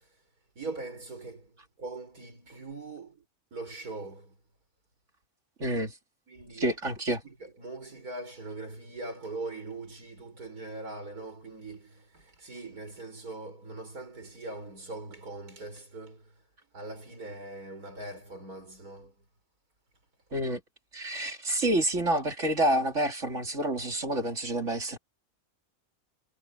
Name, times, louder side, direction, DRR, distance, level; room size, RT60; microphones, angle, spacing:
voice 1, 0.6-1.5 1.8-3.2 3.5-4.3 6.3-6.8 7.2-16.2 16.7-19.1, right 2 dB, 90° right, 6.5 m, -41 dB
voice 2, 5.6-5.9 6.6-7.2 20.3-20.6 20.9-25.0, right 1 dB, 55° right, 3.1 m, -28 dB
omnidirectional pair, 1.5 m